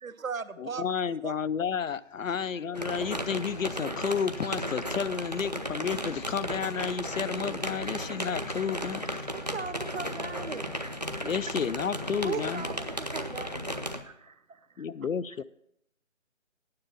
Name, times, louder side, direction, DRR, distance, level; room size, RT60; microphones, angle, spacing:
voice 1, 0.0-0.9 1.2-1.4 8.8-9.0 14.0-14.8, right 5 dB, 85° right, 0.8 m, -39 dB
voice 2, 0.6-9.5 11.2-12.7 14.8-15.4, left 7 dB, 75° left, 0.5 m, -31 dB
sound 1, 2.7-14.0, equal, 35° right, 0.4 m, -35 dB
voice 3, 9.3-10.7 12.2-13.8, right 5 dB, 55° right, 0.9 m, -38 dB
9.6 x 6.9 x 6.1 m
figure-of-eight pair, 155°, 40 cm